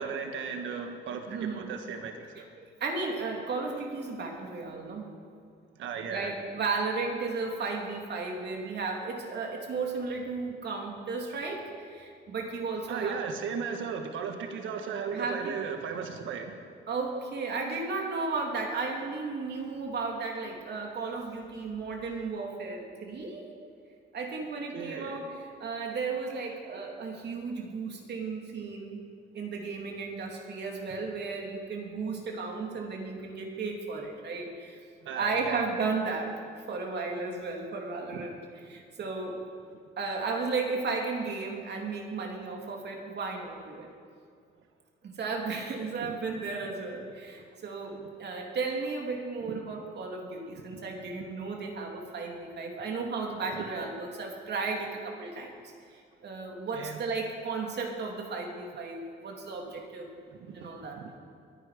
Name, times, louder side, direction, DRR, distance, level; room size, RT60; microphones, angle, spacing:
voice 1, 0.0-2.5 5.8-6.3 12.9-16.5 24.7-25.2 35.0-35.6 38.1-38.2 46.0-46.1 49.5-49.6 50.7-50.8 56.7-57.0 60.3-61.2, right 6 dB, 75° right, 5 dB, 1.4 m, -36 dB
voice 2, 1.3-1.7 2.5-5.1 6.1-13.2 15.1-15.6 16.9-23.4 24.1-29.0 29.3-34.8 35.1-38.4 38.7-39.4 40.0-43.9 45.1-55.6 55.9-60.1 60.5-61.0, right 4 dB, 60° right, 1 dB, 3.0 m, -34 dB
22.0 x 10.5 x 5.1 m, 2.2 s
cardioid pair, 90°, 20 cm